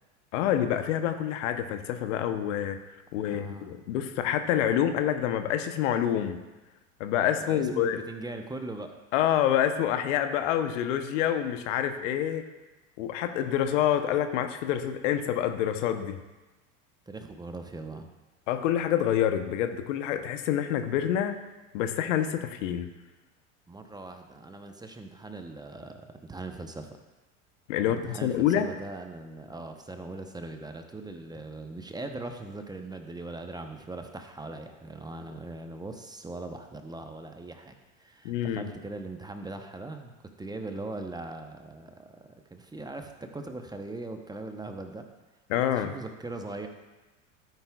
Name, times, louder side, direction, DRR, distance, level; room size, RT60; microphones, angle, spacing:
voice 1, 0.3-2.8 3.1-6.4 7.0-8.0 9.1-12.4 13.0-16.2 18.5-21.4 21.7-22.9 27.7-28.7 38.2-38.7 45.5-45.9, left 10 dB, 65° left, 9 dB, 0.9 m, -27 dB
voice 2, 3.2-3.7 7.4-9.0 17.1-18.1 23.7-26.9 27.9-42.1 42.5-45.1 45.7-46.7, right 2 dB, 10° right, 5 dB, 0.8 m, -40 dB
12.5 x 9.5 x 2.3 m, 1.1 s
hypercardioid pair, 85°, 39 cm